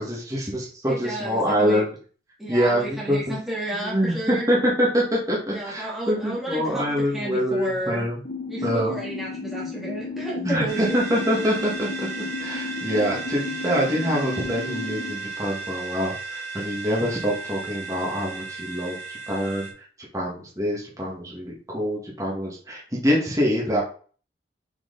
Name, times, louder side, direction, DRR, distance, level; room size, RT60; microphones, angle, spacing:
voice 1, 0.0-1.9 2.5-3.4 3.7-8.2 8.6-8.9 10.4-12.1 12.4-19.9 20.1-23.8, equal, 20° right, -4 dB, 2.0 m, -25 dB
voice 2, 0.9-1.8 2.4-4.5 5.5-8.1 8.5-11.0, right 1 dB, ahead, -7 dB, 2.3 m, -31 dB
sound 1, 8.3-15.1, left 4 dB, 50° left, 0.9 m, -34 dB
sound 2, 10.7-19.7, right 4 dB, 40° right, 2.3 m, -35 dB
6.0 x 5.0 x 4.1 m, 0.41 s
head